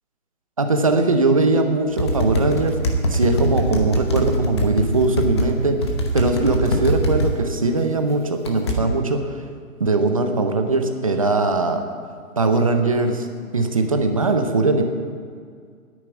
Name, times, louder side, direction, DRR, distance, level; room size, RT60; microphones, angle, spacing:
voice 1, 0.6-5.8 6.1-9.4 9.8-11.9 12.4-13.3 13.5-14.8, right 3 dB, 25° right, 6 dB, 0.6 m, -20 dB
sound 1, 2.0-5.5 5.8-7.3 8.4-8.8, equal, 20° left, 0.8 m, -22 dB
10.5 x 9.7 x 8.1 m, 2.1 s
hypercardioid pair, 165°, 44 cm